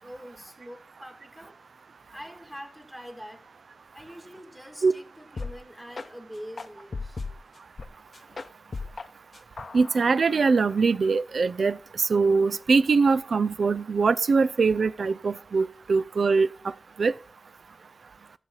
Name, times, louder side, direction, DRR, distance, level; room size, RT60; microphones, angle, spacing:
voice 1, 0.0-1.6 2.1-3.5 3.9-7.2, equal, 10° right, 2.5 m, -44 dB
sound 1, 5.4-5.6 5.9-6.1 6.6-7.9 8.1-9.1 9.3-10.8, left 4 dB, 60° left, 0.6 m, -37 dB
voice 2, 9.7-16.5 17.0-17.1, right 4 dB, 80° right, 0.4 m, -22 dB
13.5 x 7.3 x 3.9 m
wide cardioid pair, 65°, 0 cm